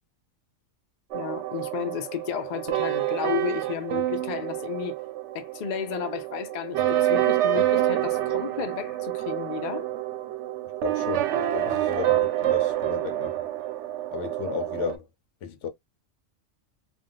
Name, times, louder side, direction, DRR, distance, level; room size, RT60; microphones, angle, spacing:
voice 1, 1.1-5.0 5.3-9.9, left 9 dB, 55° left, 0.5 m, -33 dB
sound 1, 1.1-15.0, right 13 dB, 70° right, 0.8 m, -27 dB
voice 2, 10.8-13.4 14.1-15.1 15.4-15.7, left 7 dB, 70° left, 0.9 m, -34 dB
2.6 x 2.2 x 3.7 m
omnidirectional pair, 1.3 m